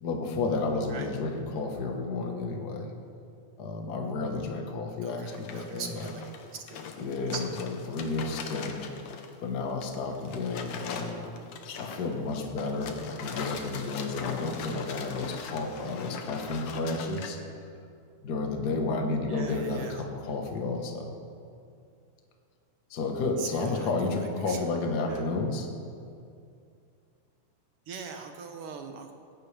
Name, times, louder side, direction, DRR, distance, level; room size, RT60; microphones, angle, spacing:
voice 1, 0.0-2.9 3.6-6.1 7.0-8.7 9.4-11.3 11.8-17.4 18.2-21.2 22.9-25.7, left 3 dB, 45° left, 2 dB, 1.4 m, -31 dB
voice 2, 5.0-6.9 7.3-7.5 19.3-20.0 23.4-23.7 24.5-24.6 25.1-25.2 27.9-29.1, right 5 dB, 65° right, 5 dB, 1.5 m, -41 dB
sound 1, 5.3-9.4 9.7-17.3, left 6 dB, 65° left, 1.9 m, -40 dB
18.0 x 15.0 x 3.4 m, 2.4 s
omnidirectional pair, 3.3 m